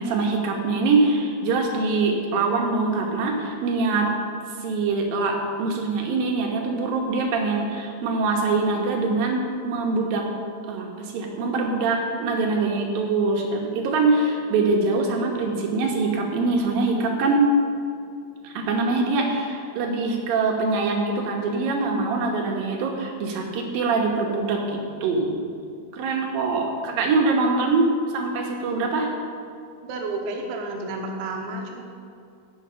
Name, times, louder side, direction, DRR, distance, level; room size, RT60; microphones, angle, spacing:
voice 1, 0.0-4.1 4.6-10.3 10.7-17.5 18.4-25.6 25.9-29.1, right 3 dB, 65° right, 1 dB, 2.4 m, -23 dB
voice 2, 29.8-31.8, right 2 dB, 85° right, 2 dB, 3.5 m, -31 dB
17.0 x 5.8 x 5.8 m, 2.4 s
omnidirectional pair, 5.4 m